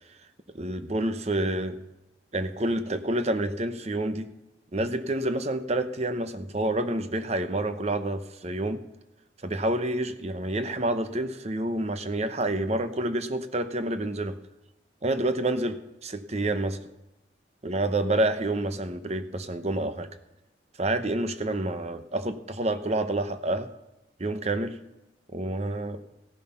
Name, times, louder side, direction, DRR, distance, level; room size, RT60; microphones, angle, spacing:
voice 1, 0.5-1.8 2.3-4.3 4.7-8.8 9.4-14.4 15.0-16.8 17.6-20.1 20.8-23.7 24.2-24.8 25.3-26.0, right 1 dB, 35° right, 10 dB, 0.9 m, -28 dB
16.0 x 11.0 x 5.7 m, 0.94 s
head